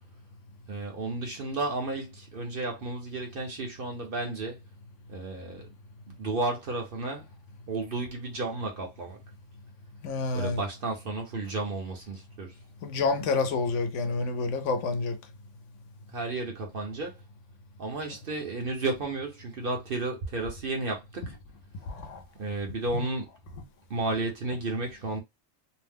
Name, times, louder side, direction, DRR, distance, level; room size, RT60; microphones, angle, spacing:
voice 1, 0.7-4.6 5.1-5.7 6.1-7.3 7.7-9.2 10.3-12.6 16.1-17.2 17.8-21.4 22.3-23.3 23.9-25.2, right 2 dB, 50° right, 0.8 m, -33 dB
voice 2, 10.0-10.6 12.8-15.1, left 3 dB, 75° left, 0.9 m, -28 dB
2.7 x 2.0 x 3.4 m
omnidirectional pair, 1.3 m